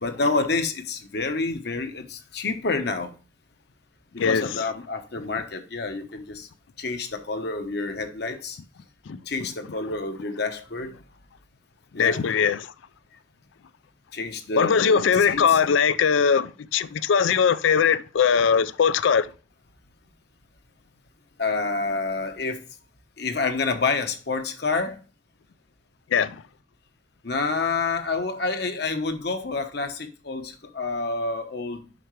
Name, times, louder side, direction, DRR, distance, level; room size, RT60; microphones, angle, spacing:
voice 1, 0.0-3.1 4.1-6.5 6.8-8.6 9.3-11.0 11.9-12.2 14.1-15.6 21.4-22.6 23.2-25.0 27.2-31.8, left 3 dB, 60° left, 1.0 m, -28 dB
voice 2, 4.2-4.5 9.1-9.2 11.9-12.7 14.6-19.3 26.1-26.4, left 6 dB, 85° left, 0.4 m, -21 dB
7.8 x 5.7 x 3.1 m
head